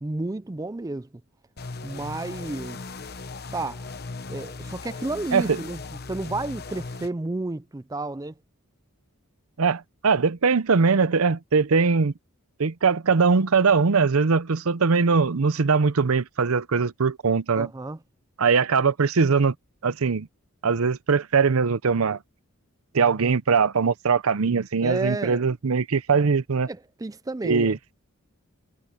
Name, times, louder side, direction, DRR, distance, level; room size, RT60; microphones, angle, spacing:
voice 1, 0.0-1.1 1.8-2.8 3.5-3.9 4.3-5.8 6.1-8.3 17.5-18.0 24.8-25.4 26.7-27.8, right 2 dB, 15° right, 0.4 m, -31 dB
sound 1, 1.6-7.1, left 3 dB, 45° left, 1.0 m, -38 dB
voice 2, 9.6-12.1 12.6-17.7 18.4-19.5 19.8-20.3 20.6-22.2 22.9-26.7 27.4-27.8, right 5 dB, 80° right, 0.7 m, -21 dB
head